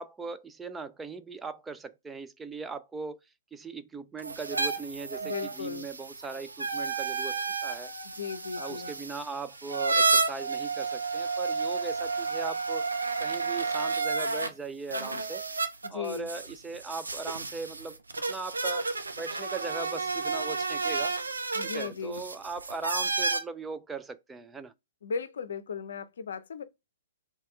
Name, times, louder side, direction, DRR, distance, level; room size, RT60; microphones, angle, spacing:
voice 1, 0.0-3.2 3.5-7.9 8.6-12.9 13.2-15.5 15.9-18.0 18.3-18.9 19.2-21.2 21.6-24.7, right 4 dB, 10° right, 0.3 m, -39 dB
sound 1, 4.2-14.5 14.9-23.4, right 4 dB, 75° right, 0.7 m, -31 dB
voice 2, 5.2-5.9 8.0-8.9 15.8-16.3 21.5-22.2 25.0-26.6, left 6 dB, 60° left, 0.5 m, -36 dB
4.0 x 2.2 x 4.4 m
figure-of-eight pair, 115°, 0 cm